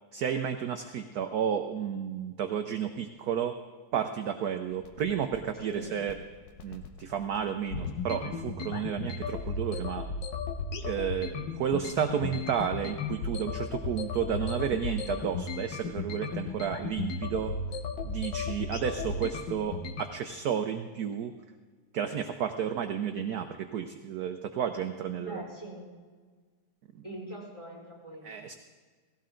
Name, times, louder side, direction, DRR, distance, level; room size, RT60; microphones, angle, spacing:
voice 1, 0.1-3.6 3.9-6.1 6.6-10.1 10.8-17.5 18.0-21.3 21.9-25.4 28.2-28.5, right 8 dB, 65° right, 7 dB, 1.0 m, -32 dB
sound 1, 4.7-20.0, left 4 dB, 60° left, 1.7 m, -35 dB
voice 2, 5.6-6.0 25.2-25.9 27.0-28.6, right 1 dB, 15° left, -3 dB, 5.0 m, -42 dB
17.0 x 16.5 x 3.8 m, 1.5 s
omnidirectional pair, 2.3 m